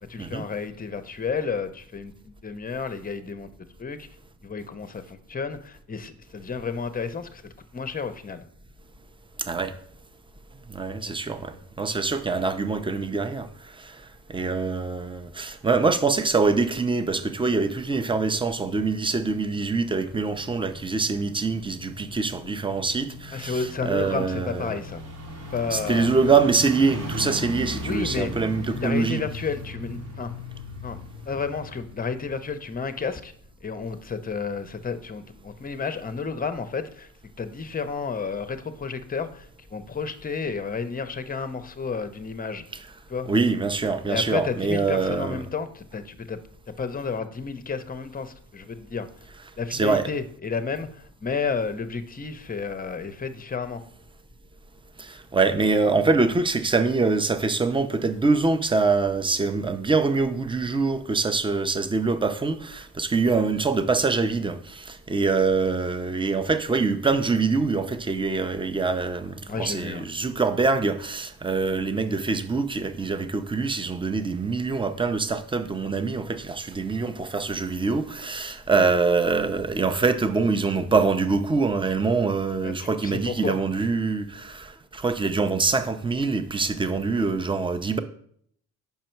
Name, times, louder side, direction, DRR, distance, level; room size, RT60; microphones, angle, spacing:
voice 1, 0.0-3.5 3.8-4.1 4.4-8.4 11.1-11.2 23.3-25.0 25.5-26.1 27.8-28.3 28.6-30.3 30.8-31.0 31.3-33.3 33.6-37.1 37.4-42.6 43.1-43.3 44.1-49.1 49.6-53.8 69.5-70.1 82.6-83.6, left 5 dB, 20° left, 0.7 m, -31 dB
voice 2, 9.4-9.7 10.7-14.0 14.3-24.8 25.7-29.2 43.3-45.4 49.7-50.1 55.0-88.0, right 4 dB, 15° right, 0.6 m, -24 dB
sound 1, 17.3-33.1 33.4-33.5, left 1 dB, 70° right, 2.1 m, -39 dB
5.7 x 5.1 x 4.5 m
cardioid pair, 75°, 39 cm